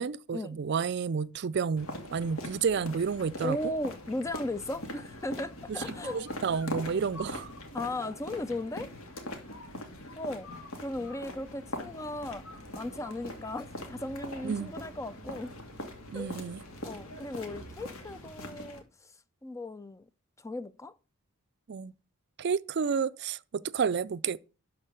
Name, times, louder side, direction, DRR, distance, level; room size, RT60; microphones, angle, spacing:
voice 1, 0.0-3.6 6.1-7.5 14.4-14.7 16.1-16.6 21.7-21.9 22.4-24.4, right 6 dB, 55° right, 0.4 m, -30 dB
sound 1, 1.8-18.8, left 1 dB, 75° left, 2.4 m, -42 dB
voice 2, 3.4-6.2 7.7-8.9 10.2-10.5 10.8-12.4 12.7-15.5 16.1-16.3 16.8-18.8 19.4-20.1 20.4-20.9, left 1 dB, 15° left, 0.4 m, -36 dB
12.0 x 4.5 x 6.7 m
head